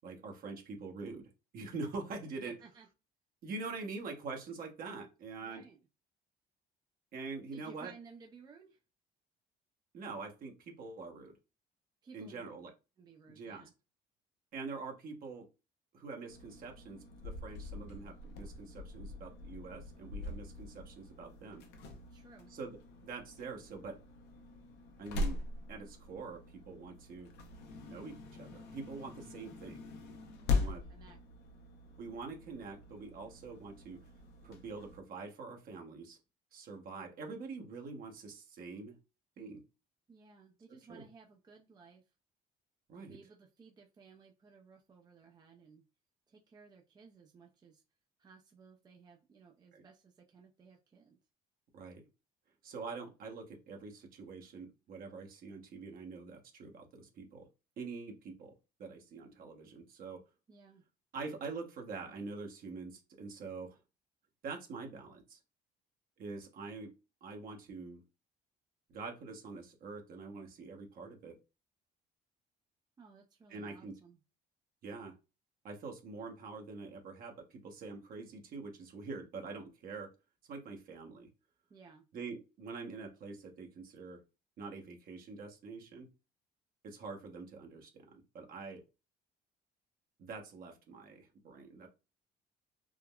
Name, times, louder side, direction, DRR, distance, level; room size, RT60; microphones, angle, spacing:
voice 1, 0.0-2.6 3.4-5.6 7.1-7.9 9.9-11.3 12.1-12.7 13.4-13.6 14.5-15.5 15.9-21.6 22.5-24.0 25.0-27.3 27.9-29.8 30.5-30.8 32.0-34.0 34.4-36.2 36.5-38.9 39.4-39.6 40.9-41.1 42.9-43.2 49.7-49.8 51.7-52.0 52.6-57.5 57.8-58.5 58.8-60.2 61.1-63.8 64.4-65.4 66.2-66.9 67.2-68.0 68.9-71.4 73.5-73.9 74.8-75.1 75.6-80.1 80.5-81.3 82.1-84.2 84.6-86.1 86.8-88.8 90.2-91.9, right 4 dB, 60° right, 2 dB, 0.9 m, -45 dB
voice 2, 2.4-2.9 5.4-5.8 7.5-8.8 12.0-12.4 13.0-13.7 22.1-22.5 30.4-31.2 40.1-42.0 42.9-45.8 46.3-47.8 48.2-51.2 60.5-60.8 73.0-74.2 81.7-82.0, right 5 dB, 25° right, 2 dB, 0.5 m, -58 dB
sound 1, 16.3-35.0, left 3 dB, 80° left, 0.7 m, -42 dB
3.5 x 2.1 x 2.3 m, 0.29 s
cardioid pair, 110°, 17 cm